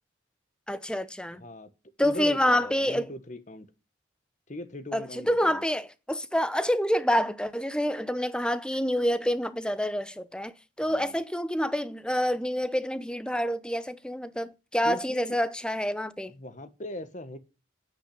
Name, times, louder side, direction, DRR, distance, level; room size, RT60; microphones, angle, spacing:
voice 1, 0.7-1.4 2.0-3.1 4.9-10.5 10.8-16.3, equal, 5° left, 0.7 m, -27 dB
voice 2, 1.3-1.7 2.0-3.7 4.5-5.6 10.8-11.1 14.8-15.4 16.3-17.4, left 1 dB, 40° left, 1.4 m, -39 dB
9.7 x 8.8 x 8.5 m
head